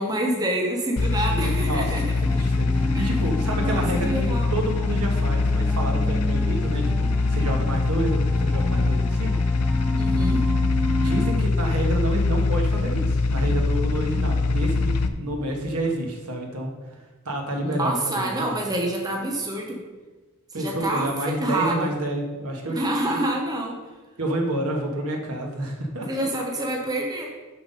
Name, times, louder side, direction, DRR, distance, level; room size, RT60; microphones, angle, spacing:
voice 1, 0.0-2.0 2.9-3.1 3.5-4.5 10.0-10.4 17.6-19.8 20.5-21.1 21.4-21.9 22.7-23.8 26.0-27.3, right 1 dB, 15° right, 0 dB, 0.8 m, -27 dB
sound 1, 1.0-15.1, left 3 dB, 85° left, 0.6 m, -23 dB
voice 2, 1.3-2.1 2.3-9.4 11.0-16.7 17.2-18.5 20.5-23.2 24.2-26.3, right 1 dB, 85° right, 1 dB, 1.4 m, -29 dB
sound 2, 2.3-11.4, left 1 dB, ahead, 0.3 m, -31 dB
6.1 x 5.8 x 5.3 m, 1.2 s
head